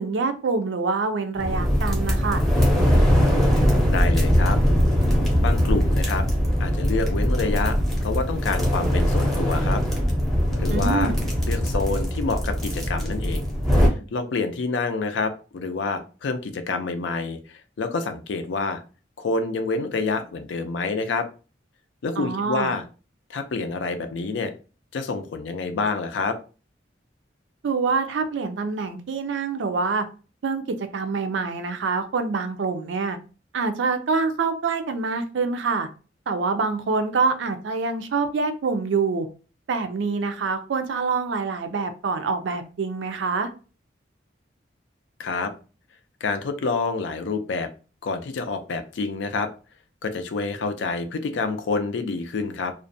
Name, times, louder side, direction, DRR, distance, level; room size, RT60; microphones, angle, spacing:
voice 1, 0.0-2.4 10.7-11.2 22.2-22.7 27.6-30.1 30.4-30.6 30.9-33.2 33.5-35.9 36.3-39.3 39.7-43.5, right 4 dB, 75° right, 8 dB, 0.4 m, -25 dB
sound 1, 1.4-13.9, equal, ahead, 0.6 m, -21 dB
voice 2, 3.9-4.6 5.4-6.3 6.6-7.7 8.0-9.8 10.6-11.1 11.5-13.5 14.1-18.8 19.2-21.3 22.0-22.8 23.3-24.5 24.9-26.4 45.2-45.5 46.2-47.7 48.0-49.5 50.0-52.7, left 4 dB, 75° left, 8 dB, 0.4 m, -27 dB
2.5 x 2.1 x 2.5 m, 0.35 s
head